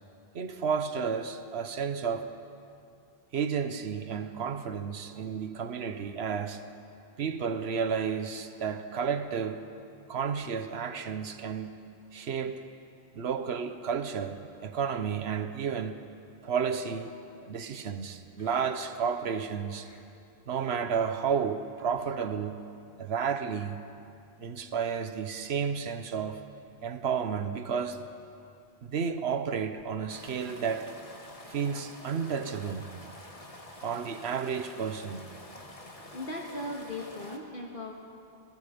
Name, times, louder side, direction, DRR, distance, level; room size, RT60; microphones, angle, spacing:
voice 1, 0.3-2.3 3.3-6.6 7.2-9.7 10.1-11.7 12.1-12.6 13.1-16.0 16.4-17.1 17.4-19.9 20.5-22.6 23.0-23.8 24.4-26.4 26.8-28.1 28.8-31.0 31.5-32.9 33.8-35.3, right 6 dB, 85° right, 1.2 m, -32 dB
sound 1, 18.4-18.6 19.0-19.2 19.5-20.0 20.9-21.2 21.4-21.5 21.9-22.2 22.5-22.6 23.3-23.4 26.1-26.4 26.8-26.9 29.8-37.4, left 1 dB, 35° left, 1.9 m, -49 dB
voice 2, 36.0-37.9, left 1 dB, 55° left, 1.9 m, -38 dB
28.0 x 19.0 x 5.2 m
omnidirectional pair, 1.1 m